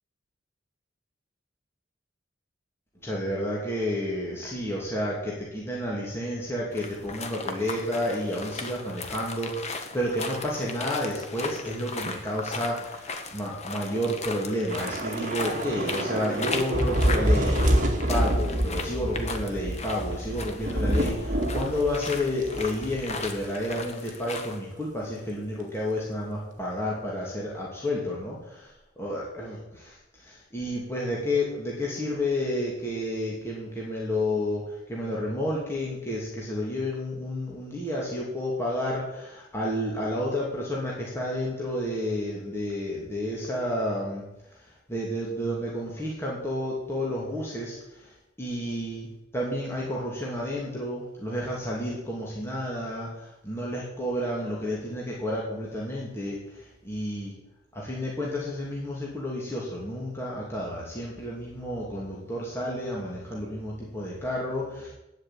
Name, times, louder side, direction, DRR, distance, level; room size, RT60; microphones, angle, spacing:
voice 1, 3.0-44.2 44.5-57.3 57.7-64.9, left 1 dB, 15° left, -5 dB, 2.6 m, -31 dB
sound 1, 6.7-24.6, left 4 dB, 35° left, 1.3 m, -37 dB
Thunder / Rain, 14.7-23.3 23.5-23.7 24.1-24.3, right 1 dB, 45° right, 2.0 m, -27 dB
10.0 x 8.0 x 8.4 m, 0.90 s
head